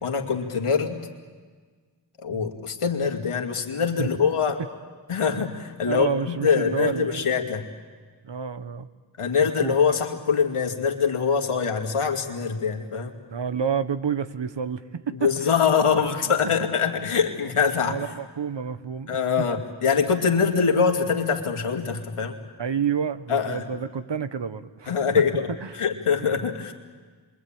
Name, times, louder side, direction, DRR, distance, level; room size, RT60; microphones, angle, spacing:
voice 1, 0.0-1.0 2.2-4.6 5.1-7.7 9.2-13.1 15.2-18.0 19.1-22.4 23.3-23.7 24.9-25.5 25.7-26.7, left 6 dB, 85° left, 3 dB, 2.4 m, -23 dB
voice 2, 2.3-2.6 4.0-4.1 5.9-7.2 8.2-8.9 9.4-9.8 13.3-15.5 17.8-19.5 22.6-24.9 25.6-25.8 26.2-26.3, right 7 dB, 55° right, 12 dB, 1.3 m, -29 dB
27.0 x 23.5 x 8.9 m, 1.5 s
cardioid pair, 45°, 50 cm